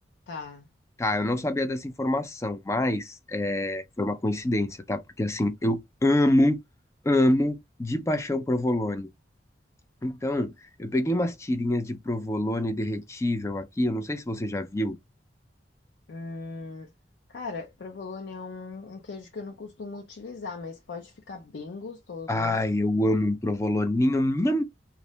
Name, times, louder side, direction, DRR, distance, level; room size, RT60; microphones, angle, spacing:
voice 1, 0.3-0.7 16.1-16.9 17.3-22.6, left 4 dB, 75° left, 0.4 m, -39 dB
voice 2, 1.0-6.6 7.0-9.1 10.0-10.5 10.8-15.0 22.3-24.6, left 1 dB, 15° left, 0.3 m, -26 dB
2.4 x 2.1 x 2.7 m
head